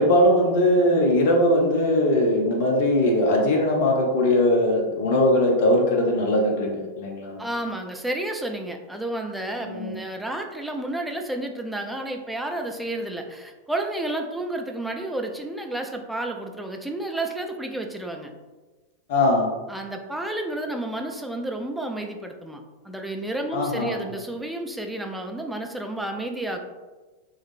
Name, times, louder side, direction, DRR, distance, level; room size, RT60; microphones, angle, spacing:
voice 1, 0.0-7.4 9.6-10.0 19.1-19.5 23.5-24.0, left 1 dB, 50° left, 0 dB, 0.8 m, -20 dB
voice 2, 7.4-18.3 19.7-26.7, right 1 dB, 5° right, 3 dB, 0.4 m, -31 dB
3.7 x 3.1 x 2.6 m, 1.2 s
figure-of-eight pair, 90°, 0 cm